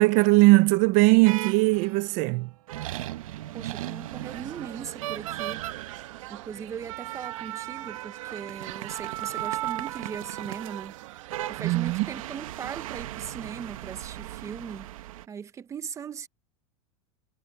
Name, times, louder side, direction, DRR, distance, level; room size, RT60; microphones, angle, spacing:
voice 1, 0.0-2.5 11.6-12.1, right 22 dB, 45° right, 0.6 m, -20 dB
sound 1, 1.3-2.1 2.7-15.3, right 15 dB, 90° right, 1.3 m, -37 dB
voice 2, 3.5-5.6 6.3-10.9 11.5-14.9 15.3-16.3, right 7 dB, 15° right, 0.9 m, -39 dB
sound 2, 4.2-12.4, right 18 dB, 75° right, 1.9 m, -45 dB
supercardioid pair, 155°, 17 cm